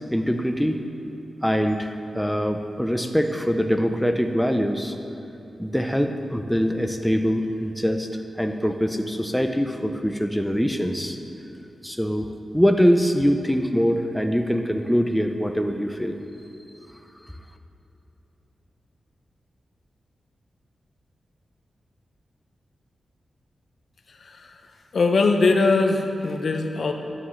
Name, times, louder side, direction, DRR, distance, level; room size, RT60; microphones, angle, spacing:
voice 1, 0.1-0.8 1.4-5.0 5.6-8.1 8.4-11.2 11.8-12.3 12.5-16.1, equal, ahead, 4 dB, 0.6 m, -23 dB
voice 2, 24.1-24.6 24.9-26.9, left 3 dB, 65° left, 4 dB, 0.8 m, -21 dB
11.0 x 9.8 x 3.2 m, 3.0 s
cardioid pair, 80°, 0 cm